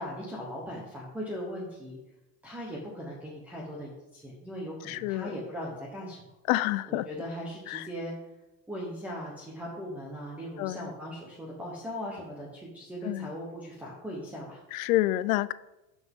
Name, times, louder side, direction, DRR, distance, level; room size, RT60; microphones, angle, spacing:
voice 1, 0.0-2.0 2.4-6.2 6.9-8.1 8.7-14.6, equal, 5° right, -4 dB, 1.0 m, -39 dB
voice 2, 4.9-5.4 6.5-7.1 7.7-7.9 10.6-10.9 13.0-13.3 14.7-15.5, left 16 dB, 70° left, 16 dB, 0.6 m, -28 dB
12.5 x 6.2 x 3.7 m, 0.95 s
cardioid pair, 175°, 43 cm